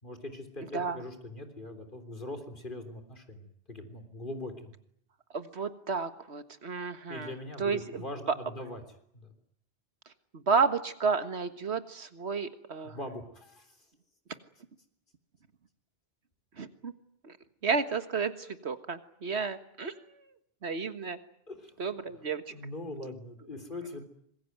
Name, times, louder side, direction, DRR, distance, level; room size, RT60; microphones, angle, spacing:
voice 1, 0.0-4.7 7.1-8.8 9.1-9.3 12.8-13.9 18.4-18.5 21.5-24.0, left 1 dB, 50° left, 7 dB, 3.7 m, -42 dB
voice 2, 5.3-7.3 7.6-8.0 10.5-13.0 16.6-16.9 17.2-17.3 17.6-19.9 20.6-21.2 21.8-22.4, right 5 dB, 85° right, 10 dB, 1.8 m, -31 dB
25.5 x 21.5 x 9.4 m, 0.70 s
omnidirectional pair, 1.1 m